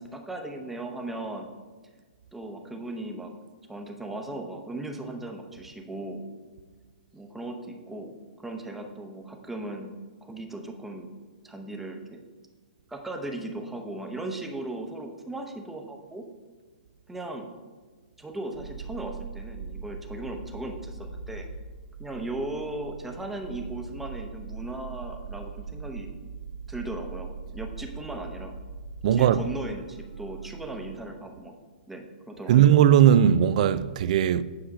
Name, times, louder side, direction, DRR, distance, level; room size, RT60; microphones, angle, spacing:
voice 1, 0.0-1.5 2.3-3.3 3.7-6.2 7.1-9.9 10.2-11.1 11.4-12.2 12.9-16.2 17.1-17.5 18.2-21.5 22.0-26.1 26.7-28.6 29.1-31.5 31.9-32.8, right 2 dB, 5° right, 0.8 m, -37 dB
sound 1, 18.5-31.0, right 4 dB, 80° right, 1.0 m, -40 dB
voice 2, 29.0-29.4 32.5-34.4, right 10 dB, 50° right, 0.4 m, -18 dB
8.1 x 4.9 x 4.9 m
hypercardioid pair, 140°, 5 cm